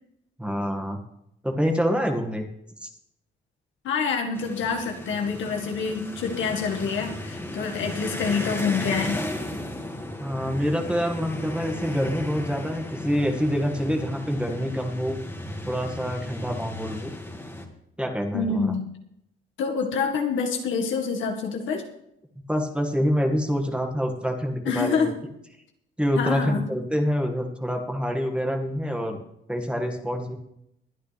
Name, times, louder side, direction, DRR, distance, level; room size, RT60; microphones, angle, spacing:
voice 1, 0.4-1.0 1.4-2.5 2.8-2.9 10.2-15.1 15.7-17.1 18.0-18.7 22.5-25.1 26.0-29.2 29.5-30.3, equal, 5° right, 3 dB, 2.0 m, -26 dB
voice 2, 3.8-9.2 18.3-18.9 19.6-21.8 24.7-25.2 26.2-26.7, left 5 dB, 75° left, 2 dB, 1.9 m, -26 dB
sound 1, 4.3-17.7, left 1 dB, 10° left, 2.2 m, -35 dB
22.0 x 9.5 x 3.5 m, 0.77 s
cardioid pair, 90°, 20 cm